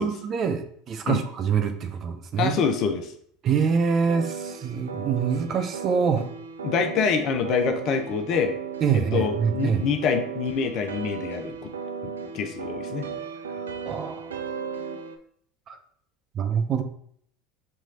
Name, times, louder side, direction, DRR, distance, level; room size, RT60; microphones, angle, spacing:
voice 1, 0.0-2.5 3.4-6.3 8.8-9.9 13.6-14.3 15.7-15.8 16.3-16.8, right 6 dB, 40° right, 7 dB, 0.6 m, -25 dB
voice 2, 2.4-3.1 6.6-8.5 8.9-11.7 12.0-13.1, left 6 dB, 50° left, 7 dB, 0.6 m, -26 dB
sound 1, 4.1-15.2, right 6 dB, 85° right, 0.4 m, -36 dB
5.5 x 3.1 x 2.7 m, 0.64 s
hypercardioid pair, 80°, 0 cm